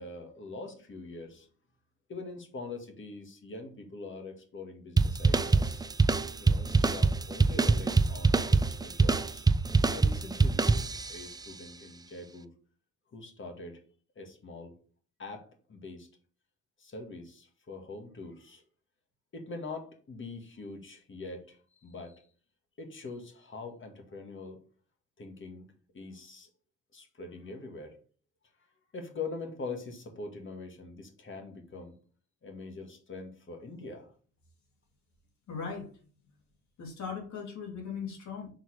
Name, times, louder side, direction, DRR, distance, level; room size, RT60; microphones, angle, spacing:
voice 1, 0.0-1.5 2.1-5.9 6.4-9.5 9.9-10.7 11.1-12.5 13.1-13.8 14.2-14.7 15.2-16.1 16.8-18.6 19.3-22.3 22.8-24.6 25.2-26.5 26.9-27.9 28.9-31.9 32.4-34.1, left 3 dB, 40° left, 4 dB, 2.0 m, -43 dB
sound 1, 5.0-11.3, right 3 dB, 15° right, 0.4 m, -25 dB
voice 2, 35.5-35.9 36.8-38.5, left 6 dB, 70° left, 0 dB, 3.3 m, -38 dB
6.6 x 4.0 x 4.9 m, 0.41 s
cardioid pair, 90°, 30 cm